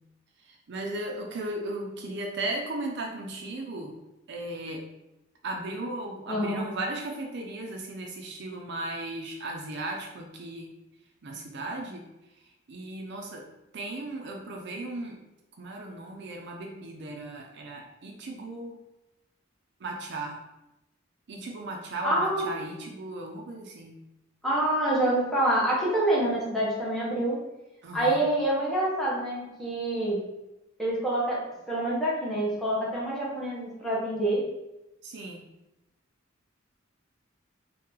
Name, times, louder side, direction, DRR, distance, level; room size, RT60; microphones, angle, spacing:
voice 1, 0.4-4.0 4.3-4.8 5.4-10.7 11.2-12.1 12.7-13.5 13.7-15.2 15.6-18.8 19.8-20.4 21.3-24.0 27.8-28.2 35.0-35.4, right 2 dB, 60° right, 1 dB, 0.5 m, -36 dB
voice 2, 6.3-6.7 22.0-22.5 24.4-27.4 27.9-30.2 30.8-31.4 31.7-34.4, right 1 dB, ahead, -7 dB, 1.0 m, -26 dB
3.1 x 2.7 x 3.7 m, 0.94 s
head